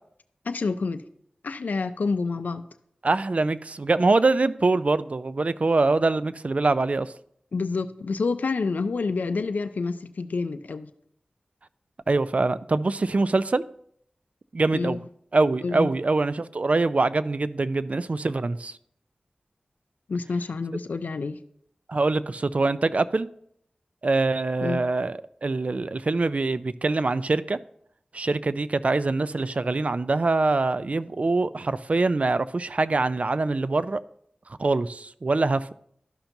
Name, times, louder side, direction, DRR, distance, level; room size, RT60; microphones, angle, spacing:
voice 1, 0.5-1.0 1.4-2.6 7.5-10.9 14.7-15.1 15.6-15.9 20.1-21.4 24.6-24.8, left 4 dB, 80° left, 0.4 m, -28 dB
voice 2, 3.0-7.1 12.1-13.6 14.5-15.0 15.3-18.8 21.9-23.3 24.0-27.6 28.1-34.0 34.6-35.7, right 3 dB, 55° right, 0.4 m, -24 dB
13.0 x 5.8 x 2.7 m
cardioid pair, 40°, 3 cm